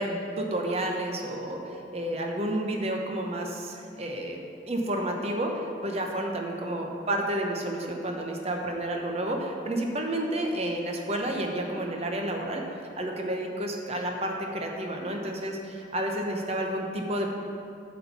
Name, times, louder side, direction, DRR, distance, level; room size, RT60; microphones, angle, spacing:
voice 1, 0.0-4.4 4.7-12.6 13.0-17.4, right 1 dB, 35° right, 2 dB, 0.9 m, -30 dB
8.3 x 4.4 x 7.0 m, 2.6 s
head